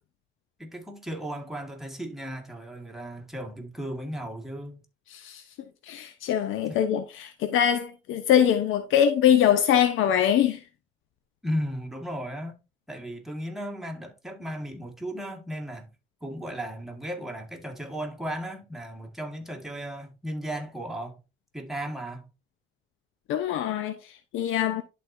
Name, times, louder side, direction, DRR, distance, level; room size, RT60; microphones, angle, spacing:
voice 1, 0.6-4.8 6.7-6.8 11.4-12.6 12.9-15.9 16.2-21.2 21.5-22.3, equal, ahead, 1.8 m, -35 dB
voice 2, 5.1-5.4 5.8-10.6 23.3-24.8, left 9 dB, 85° left, 0.7 m, -23 dB
11.0 x 4.2 x 2.6 m
cardioid pair, 90°, 20 cm